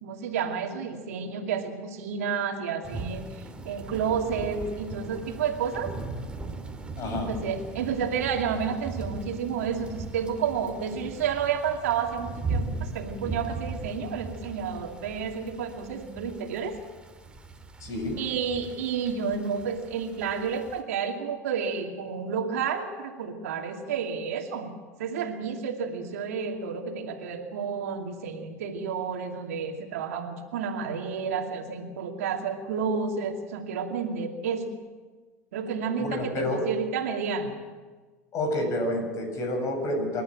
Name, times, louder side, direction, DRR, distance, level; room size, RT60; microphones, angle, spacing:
voice 1, 0.0-5.9 7.1-16.8 18.1-24.7 25.0-34.7 35.5-37.6, right 6 dB, 70° right, 4 dB, 2.5 m, -30 dB
sound 1, 2.8-20.8, right 3 dB, 10° right, 2.5 m, -38 dB
voice 2, 7.0-7.3 17.8-18.2 36.0-36.7 38.3-40.2, left 1 dB, 40° left, 5 dB, 7.3 m, -29 dB
27.0 x 12.5 x 8.9 m, 1.4 s
hypercardioid pair, 85°, 8 cm